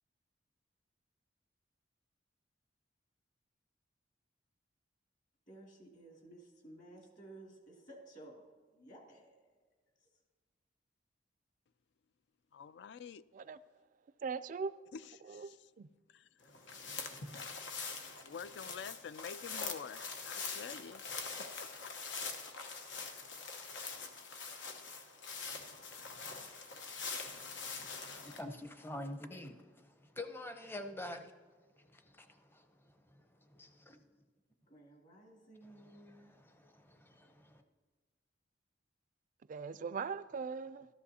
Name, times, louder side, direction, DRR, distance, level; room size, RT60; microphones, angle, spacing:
voice 1, 5.5-9.6 10.0-10.1 34.7-36.5, right 1 dB, 45° left, 2.3 m, -56 dB
voice 2, 12.5-13.3 14.9-15.7 16.1-16.3 18.2-21.0 21.4-21.9, left 6 dB, 65° left, 0.3 m, -48 dB
voice 3, 14.2-14.7 15.3-15.9 39.5-40.9, right 5 dB, 45° right, 0.3 m, -40 dB
sound 1, 16.5-28.4, left 4 dB, 90° left, 1.0 m, -44 dB
voice 4, 27.7-31.3 31.8-34.0 36.2-37.6, left 1 dB, 10° left, 0.7 m, -47 dB
14.0 x 13.0 x 2.8 m
head